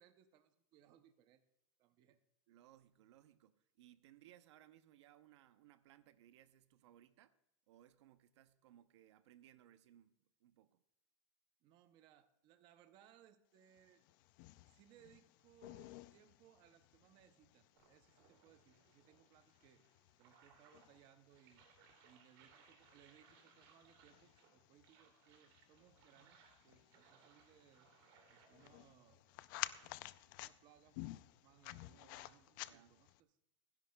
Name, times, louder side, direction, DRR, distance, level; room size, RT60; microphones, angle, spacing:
voice 1, 0.0-1.4 1.8-2.2 11.6-14.0 14.7-19.8 20.2-21.7 22.0-26.4 26.6-27.9 28.3-29.7 30.2-33.3, right 10 dB, 30° right, 0.6 m, -68 dB
voice 2, 2.5-7.3 7.7-10.8 31.9-32.9, right 12 dB, 70° right, 0.7 m, -65 dB
sound 1, 13.8-33.2, left 17 dB, 45° left, 0.4 m, -54 dB
sound 2, 17.7-29.9, right 6 dB, 50° right, 2.5 m, -69 dB
28.5 x 10.5 x 2.2 m
supercardioid pair, 170°, 15 cm